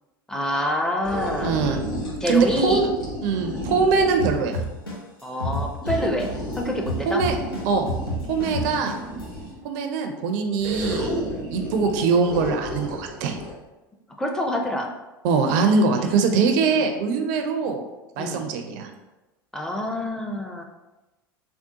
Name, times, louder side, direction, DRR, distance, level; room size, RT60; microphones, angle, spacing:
voice 1, 0.3-1.6 2.2-2.9 5.2-7.2 8.6-9.1 14.2-14.9 15.9-16.2 16.7-16.8 18.2-18.4 19.5-20.6, left 1 dB, 5° left, 0 dB, 0.4 m, -27 dB
sound 1, 1.0-4.4 5.8-9.6 10.6-13.5, equal, 70° left, 1.4 m, -32 dB
voice 2, 1.4-1.8 2.3-2.9 3.2-4.6 7.1-7.4 7.7-7.9 8.3-9.0 9.6-11.1 11.5-13.4 15.2-17.8 18.2-18.9, right 4 dB, 55° right, 5 dB, 0.4 m, -22 dB
sound 2, 4.2-6.5 6.9-9.2, equal, 90° left, 0.8 m, -28 dB
3.6 x 2.2 x 2.7 m, 1.1 s
figure-of-eight pair, 80°, 12 cm